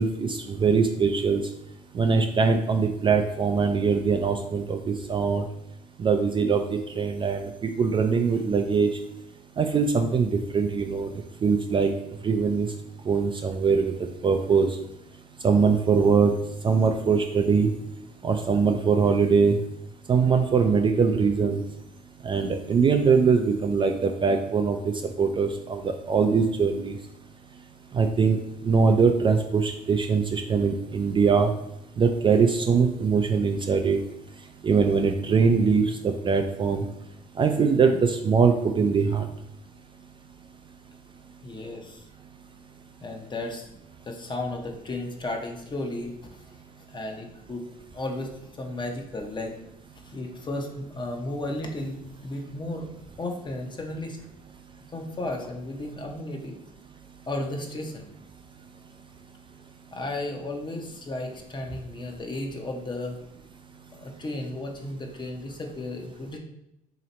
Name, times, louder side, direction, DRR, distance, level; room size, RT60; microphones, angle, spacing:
voice 1, 0.0-1.4 1.9-5.4 6.0-8.9 9.6-11.1 11.4-11.9 12.2-12.7 13.1-13.9 14.2-14.8 15.4-16.3 16.6-17.7 18.2-19.6 20.1-21.6 22.2-27.0 27.9-31.5 32.0-34.0 34.6-36.9 37.4-39.3, right 5 dB, 30° right, 4 dB, 0.4 m, -22 dB
voice 2, 41.4-42.1 43.0-43.7 44.0-46.6 46.9-47.7 47.9-49.6 50.0-52.9 53.2-54.3 54.9-56.6 57.3-58.1 59.9-63.2 64.0-66.4, left 2 dB, 25° left, 2 dB, 0.8 m, -34 dB
3.1 x 2.9 x 4.0 m, 0.83 s
supercardioid pair, 80°, 17 cm